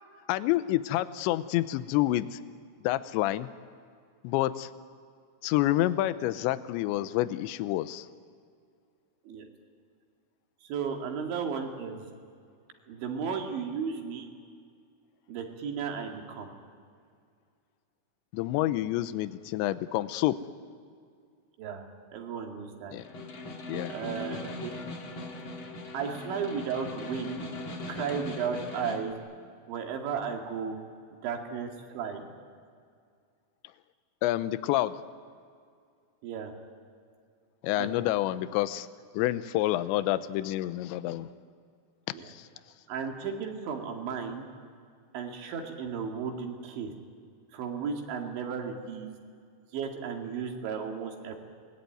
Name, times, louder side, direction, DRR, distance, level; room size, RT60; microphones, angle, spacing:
voice 1, 0.3-2.4 2.8-3.5 4.2-4.7 5.4-8.1 18.3-20.4 22.9-23.0 23.7-23.9 34.2-35.0 37.6-38.9 39.1-41.3 42.3-42.5, left 15 dB, 80° left, 13 dB, 2.8 m, -28 dB
voice 2, 10.6-12.1 12.9-14.3 15.3-16.5 21.6-21.9 22.1-22.9 23.9-24.7 25.9-27.4 27.9-29.1 29.7-30.8 31.2-32.3 36.2-36.5 37.8-38.1 42.1-42.3 42.9-44.5 45.1-46.9 47.5-49.1 49.7-51.3, right 6 dB, 70° right, 2 dB, 4.5 m, -34 dB
Snare drum, 23.0-29.1, left 2 dB, 45° left, 1.7 m, -40 dB
27.5 x 20.5 x 9.3 m, 2.2 s
omnidirectional pair, 5.8 m